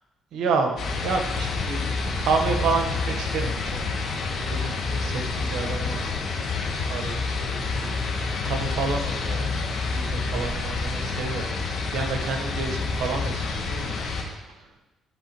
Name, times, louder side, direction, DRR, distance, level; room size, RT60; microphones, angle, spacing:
voice 1, 0.3-0.7 1.0-1.9 2.2-3.8 4.1-6.0 6.9-7.2 7.5-7.9 8.4-11.5 11.9-13.9, right 4 dB, 80° right, 4 dB, 1.0 m, -29 dB
sound 1, 0.8-14.2, left 4 dB, 70° left, 1.8 m, -28 dB
13.0 x 5.8 x 3.0 m, 1.1 s
cardioid pair, 85°, 0 cm